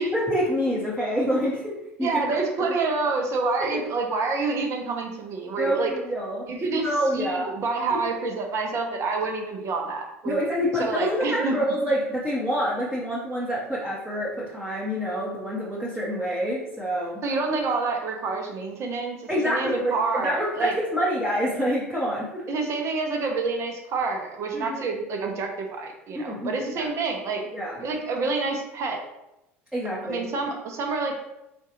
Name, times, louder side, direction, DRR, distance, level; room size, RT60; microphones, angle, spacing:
voice 1, 0.0-2.1 3.7-3.8 5.6-6.4 6.8-7.5 10.3-17.2 19.3-22.4 24.5-24.8 26.1-26.9 27.5-27.8 29.7-30.3, equal, 10° right, -6 dB, 0.9 m, -27 dB
voice 2, 2.0-5.9 6.5-6.9 7.1-10.5 10.8-11.6 17.2-20.7 22.5-27.4 27.8-29.0 30.1-31.2, right 4 dB, 40° right, 2 dB, 0.8 m, -28 dB
4.4 x 2.4 x 2.8 m, 0.89 s
figure-of-eight pair, 75°, 7 cm